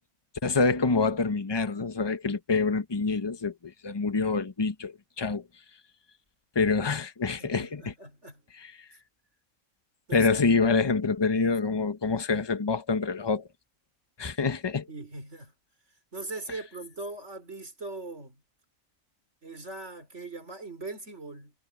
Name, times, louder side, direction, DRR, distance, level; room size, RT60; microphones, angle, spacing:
voice 1, 0.4-5.4 6.5-7.9 8.5-8.8 10.1-13.5 14.2-14.9, left 4 dB, 20° left, 1.0 m, -26 dB
voice 2, 7.4-8.4 10.1-10.4 14.9-15.5 16.1-18.4 19.4-21.5, right 2 dB, 55° right, 5.0 m, -40 dB
omnidirectional pair, 1.4 m